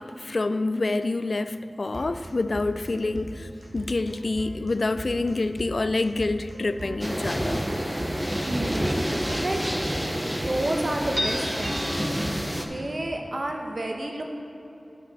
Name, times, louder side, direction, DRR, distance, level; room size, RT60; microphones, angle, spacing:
voice 1, 0.0-7.6, left 2 dB, 60° left, 0.3 m, -27 dB
sound 1, 1.9-12.7, right 1 dB, 65° right, 1.5 m, -39 dB
sound 2, 7.0-12.6, equal, 5° right, 0.7 m, -28 dB
voice 2, 8.4-9.6 10.5-12.0 12.7-14.2, right 1 dB, 50° right, 1.0 m, -30 dB
11.5 x 6.4 x 4.1 m
wide cardioid pair, 65°, 0 cm